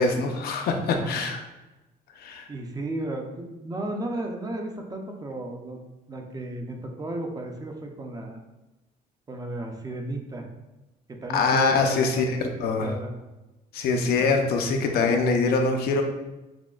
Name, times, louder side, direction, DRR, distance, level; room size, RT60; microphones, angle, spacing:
voice 1, 0.0-1.4 2.2-2.5 11.3-12.3 12.6-12.9 13.7-16.0, left 4 dB, 65° left, 4 dB, 0.5 m, -23 dB
voice 2, 0.9-1.2 2.5-5.8 6.1-8.4 9.3-10.5 11.1-12.5 12.8-13.1, right 2 dB, 20° right, 3 dB, 0.5 m, -34 dB
6.1 x 2.1 x 2.3 m, 1.0 s
cardioid pair, 110°, 17 cm